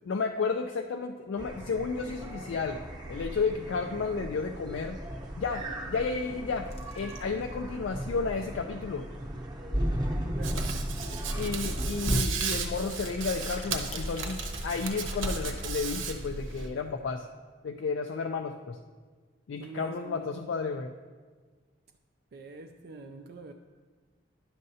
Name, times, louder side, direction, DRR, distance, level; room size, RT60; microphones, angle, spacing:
voice 1, 0.1-2.8 3.1-5.0 5.4-6.7 7.0-9.0 11.4-17.3 17.6-18.8 19.5-20.9, left 4 dB, 75° left, 0.4 m, -32 dB
sound 1, 1.4-12.2, equal, 20° right, 0.8 m, -35 dB
sound 2, 6.7-7.6 8.1-8.2 8.3-8.4 8.9-9.0 10.2-10.3 10.6-10.8 11.9-16.5, left 2 dB, 35° left, 0.7 m, -50 dB
voice 2, 10.3-10.7 19.6-20.4 22.3-23.5, right 4 dB, 50° right, 0.3 m, -45 dB
Hands, 10.4-16.7, right 4 dB, 85° right, 0.8 m, -34 dB
10.5 x 6.5 x 2.7 m
head